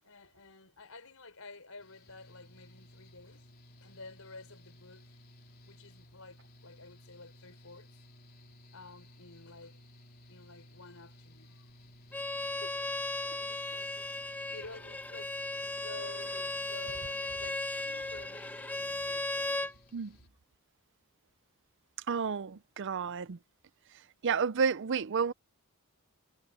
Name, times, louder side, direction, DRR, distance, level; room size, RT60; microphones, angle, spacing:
voice 1, 0.0-3.5 3.8-5.2 5.6-7.9 8.7-9.8 10.3-11.7 12.4-14.0 14.2-19.8, left 3 dB, 70° left, 5.4 m, -51 dB
Mechanical fan, 1.8-20.3, left 1 dB, 45° left, 3.6 m, -57 dB
Bowed string instrument, 12.1-19.7, left 2 dB, 10° left, 1.1 m, -36 dB
voice 2, 22.1-23.4 24.2-25.3, right 6 dB, 55° right, 0.5 m, -31 dB
head